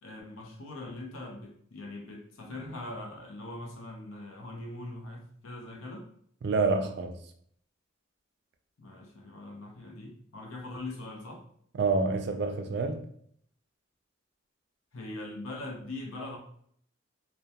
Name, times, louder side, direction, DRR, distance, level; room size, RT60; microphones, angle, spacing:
voice 1, 0.0-6.1 8.8-11.4 14.9-16.4, left 2 dB, 85° left, 0.6 m, -41 dB
voice 2, 6.4-7.2 11.7-13.0, right 3 dB, 55° right, 0.3 m, -27 dB
2.2 x 2.2 x 2.7 m
head